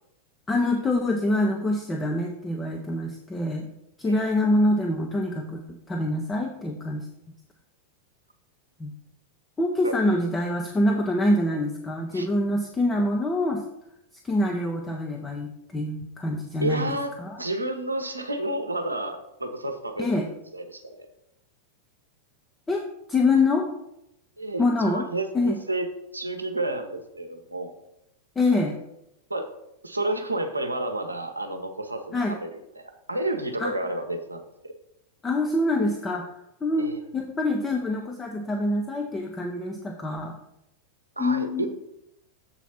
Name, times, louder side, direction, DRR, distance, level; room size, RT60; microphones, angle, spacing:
voice 1, 0.5-3.7 4.0-7.1 8.8-8.9 9.6-13.6 14.2-17.4 20.0-20.3 22.7-22.8 23.1-23.7 24.6-25.0 25.3-25.6 28.4-28.8 32.1-32.4 33.6-33.7 35.2-36.2 36.6-40.3 41.2-41.7, left 2 dB, 15° left, 2 dB, 0.7 m, -25 dB
voice 2, 16.6-17.1 17.4-21.1 24.4-25.9 26.1-27.7 29.3-29.5 29.8-32.5 32.7-34.7 36.8-37.0 41.2-41.7, right 1 dB, 80° right, 6 dB, 0.9 m, -31 dB
7.3 x 4.1 x 5.9 m, 0.84 s
figure-of-eight pair, 90°, 0 cm